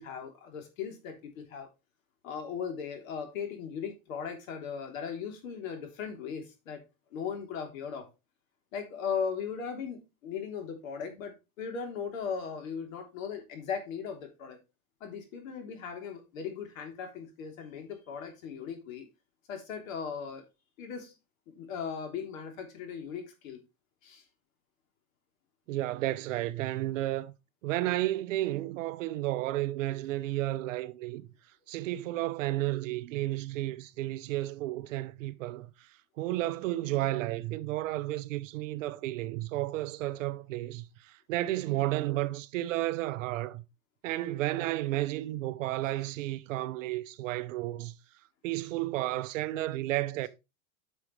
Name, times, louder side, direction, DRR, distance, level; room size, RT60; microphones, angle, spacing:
voice 1, 0.0-1.7 2.2-6.8 7.1-8.1 8.7-14.6 15.0-19.1 19.5-20.5 20.8-21.1 21.6-23.6 24.0-24.2, left 6 dB, 65° left, 3.4 m, -38 dB
voice 2, 25.7-27.3 27.6-31.3 31.7-35.7 36.2-43.6 44.0-47.9 48.4-50.3, right 16 dB, 60° right, 0.8 m, -32 dB
10.0 x 6.2 x 3.2 m
supercardioid pair, 170°, 44 cm